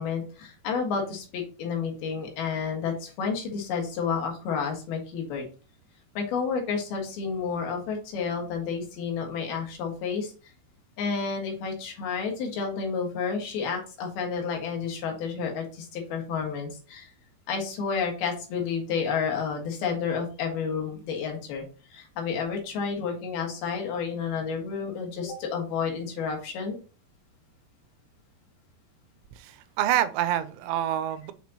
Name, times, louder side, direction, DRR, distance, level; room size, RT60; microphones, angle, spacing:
voice 1, 0.0-5.4 6.1-10.3 11.0-17.1 17.5-21.6 21.9-26.8, left 6 dB, 65° left, 3.2 m, -30 dB
voice 2, 29.4-31.3, right 12 dB, 90° right, 3.0 m, -27 dB
7.0 x 6.0 x 2.9 m
omnidirectional pair, 5.2 m